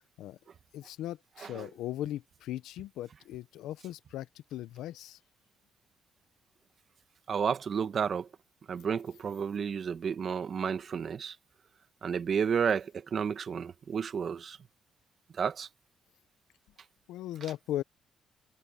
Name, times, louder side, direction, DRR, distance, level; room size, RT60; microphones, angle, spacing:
voice 1, 0.7-5.2 17.1-17.8, left 13 dB, 90° left, 0.7 m, -38 dB
voice 2, 1.4-1.7 7.3-8.3 8.7-11.4 12.0-14.6 15.3-15.7, right 7 dB, 50° right, 1.4 m, -31 dB
cardioid pair, 90°, 0 cm